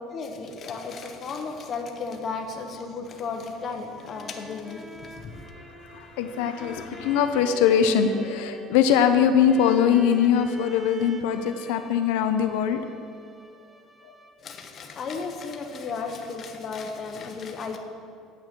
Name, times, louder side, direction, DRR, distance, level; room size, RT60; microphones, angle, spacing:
voice 1, 0.1-5.5 14.4-17.8, left 4 dB, 30° left, 3 dB, 1.0 m, -34 dB
sound 1, 4.0-14.6, equal, 5° right, 0.4 m, -44 dB
voice 2, 5.6-12.8, left 8 dB, 90° left, 8 dB, 0.6 m, -22 dB
9.1 x 8.1 x 6.0 m, 2.5 s
cardioid pair, 170°, 0 cm